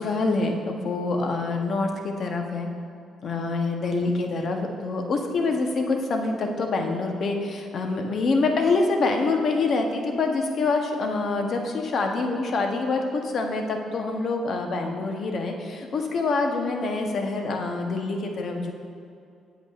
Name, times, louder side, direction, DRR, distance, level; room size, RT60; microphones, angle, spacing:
voice 1, 0.0-2.7 3.2-18.7, left 3 dB, 55° left, 3 dB, 0.8 m, -26 dB
8.1 x 7.9 x 2.4 m, 2.5 s
cardioid pair, 90°, 0 cm